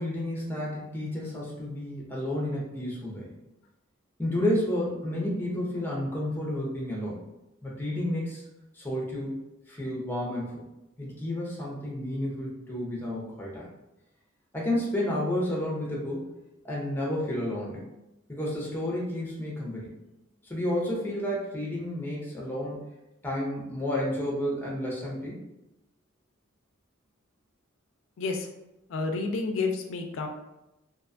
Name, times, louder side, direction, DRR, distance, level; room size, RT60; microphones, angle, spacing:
voice 1, 0.0-3.3 4.2-7.2 7.6-8.4 8.7-9.4 9.7-10.6 11.0-13.7 14.5-16.3 16.6-17.8 18.3-19.9 20.4-22.8 23.2-25.4, left 1 dB, 10° left, -4 dB, 0.6 m, -31 dB
voice 2, 28.2-28.5 28.9-30.3, left 3 dB, 70° left, 4 dB, 0.3 m, -30 dB
2.6 x 2.2 x 2.5 m, 0.93 s
head